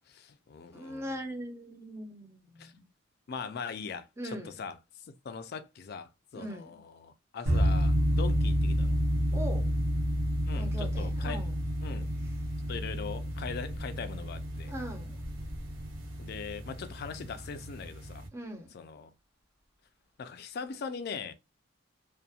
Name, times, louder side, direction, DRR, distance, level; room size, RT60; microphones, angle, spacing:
voice 1, 0.1-1.2 2.6-2.7 3.3-4.8 5.1-9.0 10.5-11.5 11.8-12.1 12.7-14.7 16.2-18.2 18.7-19.1 20.2-21.3, left 5 dB, 50° left, 0.3 m, -41 dB
voice 2, 0.7-2.8 4.2-4.6 6.3-6.8 9.3-9.7 10.6-11.5 14.7-15.2 18.3-18.7, equal, 15° right, 0.5 m, -40 dB
sound 1, 7.5-18.3, equal, 70° right, 0.8 m, -30 dB
2.7 x 2.1 x 2.3 m
head